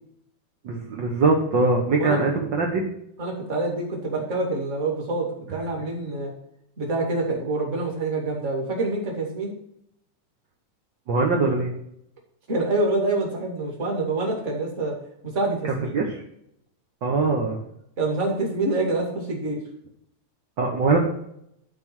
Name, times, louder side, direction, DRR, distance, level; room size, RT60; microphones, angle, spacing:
voice 1, 0.6-2.9 11.1-11.7 15.6-16.2 17.0-17.6 20.6-21.0, right 3 dB, 55° right, 0 dB, 1.3 m, -22 dB
voice 2, 3.2-6.3 6.8-9.5 12.5-14.9 15.2-15.9 17.2-17.3 18.0-19.6, right 2 dB, 25° right, -1 dB, 2.3 m, -26 dB
12.0 x 4.4 x 6.0 m, 0.76 s
omnidirectional pair, 3.4 m